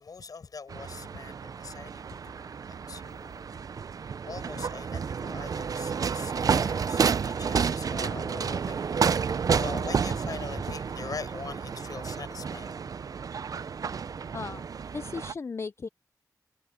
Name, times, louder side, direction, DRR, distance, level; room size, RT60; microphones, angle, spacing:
voice 1, 0.0-3.4 4.3-12.7, left 5 dB, 65° left, 7.0 m, -42 dB
sound 1, 0.7-15.3, right 6 dB, 60° right, 0.5 m, -30 dB
voice 2, 14.3-14.6 14.9-15.9, left 4 dB, 40° left, 0.4 m, -36 dB
wide cardioid pair, 95°, 7 cm